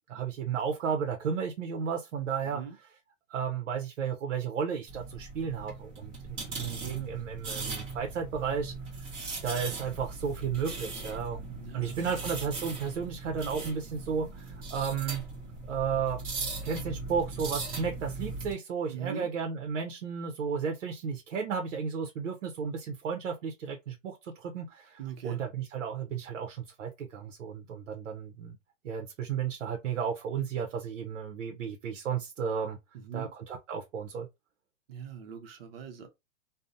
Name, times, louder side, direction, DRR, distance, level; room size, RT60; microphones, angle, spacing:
voice 1, 0.1-2.6 3.3-8.7 9.4-15.2 15.7-16.2 16.6-28.6 28.8-32.8 33.1-34.3, right 6 dB, 85° right, 0.7 m, -33 dB
voice 2, 2.4-2.8 11.6-12.0 18.9-19.3 25.0-25.4 32.9-33.3 34.9-36.1, right 7 dB, 50° right, 0.7 m, -41 dB
sound 1, 4.9-18.5, right 3 dB, 15° right, 0.7 m, -39 dB
2.6 x 2.0 x 2.5 m
hypercardioid pair, 155°, 37 cm